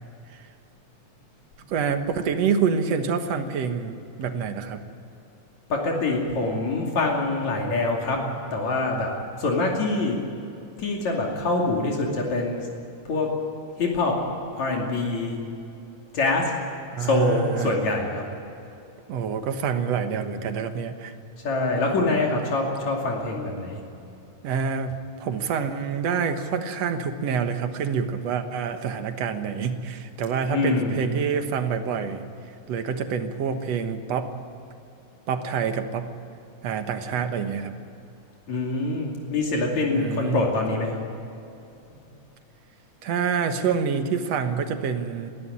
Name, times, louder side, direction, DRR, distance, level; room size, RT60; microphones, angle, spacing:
voice 1, 1.7-4.8 16.9-17.7 19.1-21.2 24.4-32.2 32.7-34.3 35.3-36.1 36.6-37.7 39.9-40.4 43.0-45.3, right 6 dB, 65° right, 7 dB, 2.4 m, -27 dB
voice 2, 5.7-8.2 8.5-10.2 10.8-12.7 13.1-13.3 13.8-14.2 14.6-15.4 16.1-16.6 17.0-18.3 21.4-23.8 30.4-31.1 38.5-41.0, left 2 dB, 70° left, -1 dB, 3.9 m, -25 dB
21.5 x 15.5 x 9.9 m, 2.7 s
omnidirectional pair, 3.3 m